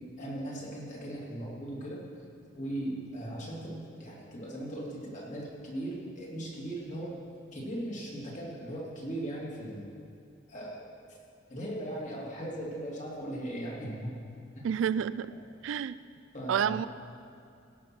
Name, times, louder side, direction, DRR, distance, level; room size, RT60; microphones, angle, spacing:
voice 1, 0.2-2.0 2.5-7.1 7.5-9.9 10.5-10.8 11.5-14.2 14.6-14.7 15.3-15.4 16.3-16.9, right 1 dB, 40° left, -4 dB, 2.6 m, -38 dB
voice 2, 14.6-15.3 15.6-16.0 16.5-16.9, right 8 dB, 75° right, 16 dB, 0.3 m, -29 dB
16.5 x 6.0 x 6.0 m, 2.5 s
head